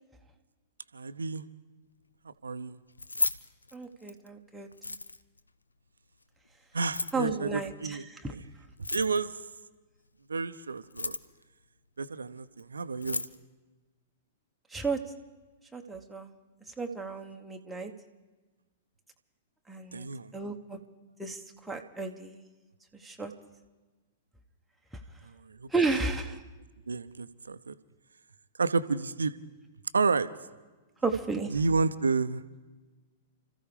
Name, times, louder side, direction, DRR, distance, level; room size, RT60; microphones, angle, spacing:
voice 1, 0.9-1.5 2.2-2.8 6.7-8.4 8.9-9.4 10.3-11.2 12.0-13.3 19.9-20.3 25.2-26.0 26.9-27.8 28.6-29.3 29.9-30.3 31.5-32.4, right 4 dB, 75° right, 13 dB, 0.6 m, -30 dB
Keys jangling, 2.9-4.3 4.7-5.4 6.8-7.2 8.7-9.4 10.8-11.4 12.6-12.7 12.9-13.4, left 3 dB, 85° left, 0.6 m, -34 dB
voice 2, 3.7-4.7 7.1-8.3 14.7-15.0 15.7-16.3 16.8-17.9 19.7-20.1 20.3-20.8 21.2-22.4 23.0-23.3 25.7-26.4 31.0-31.5, right 4 dB, 5° right, 1 dB, 1.1 m, -33 dB
30.0 x 14.5 x 3.4 m, 1.2 s
figure-of-eight pair, 105°, 0 cm